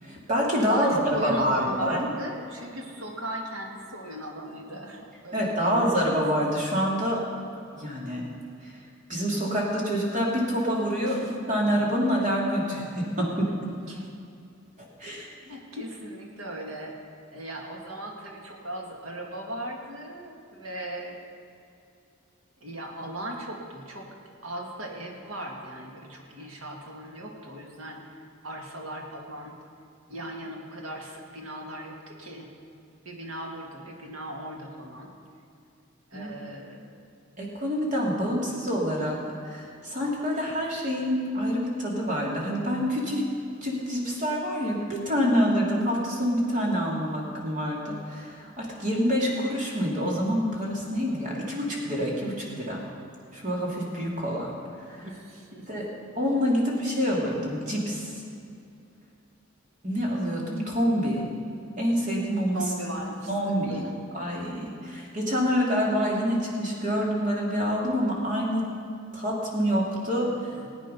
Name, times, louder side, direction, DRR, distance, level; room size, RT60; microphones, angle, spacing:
voice 1, 0.0-2.1 5.3-7.2 7.8-8.2 8.6-8.8 9.1-13.5 15.0-15.3 36.1-36.3 37.4-39.2 39.4-43.3 43.6-52.8 53.3-54.5 54.9-55.1 55.7-55.9 56.1-58.2 59.8-61.3 61.8-62.6 63.3-63.8 64.1-68.6 69.1-70.3, equal, 40° right, -3 dB, 2.8 m, -27 dB
voice 2, 0.7-6.2 11.0-11.8 13.9-14.1 15.1-17.0 17.3-21.2 22.6-24.1 24.4-28.0 28.4-29.6 30.1-32.5 33.1-35.1 36.1-36.8 55.0-56.0 62.5-63.4 63.7-64.0 70.2-70.7, right 1 dB, 80° right, 0 dB, 2.1 m, -38 dB
18.5 x 9.1 x 5.6 m, 2.5 s
head